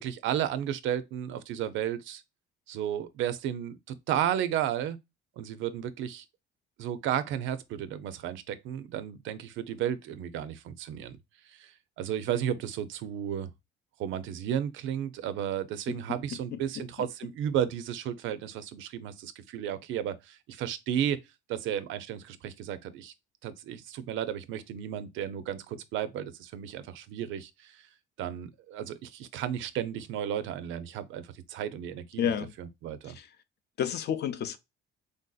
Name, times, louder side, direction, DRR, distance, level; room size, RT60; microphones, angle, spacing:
voice 1, 0.0-2.2 2.7-5.0 5.4-6.2 6.8-11.2 11.5-13.5 14.0-21.2 21.5-23.1 23.4-27.9 28.2-32.3 32.6-33.1, right 10 dB, 75° right, 0.5 m, -33 dB
voice 2, 16.5-17.1 32.2-32.5 33.1-33.3 33.8-34.6, left 8 dB, 55° left, 0.5 m, -31 dB
3.3 x 2.6 x 2.3 m
cardioid pair, 95°, 20 cm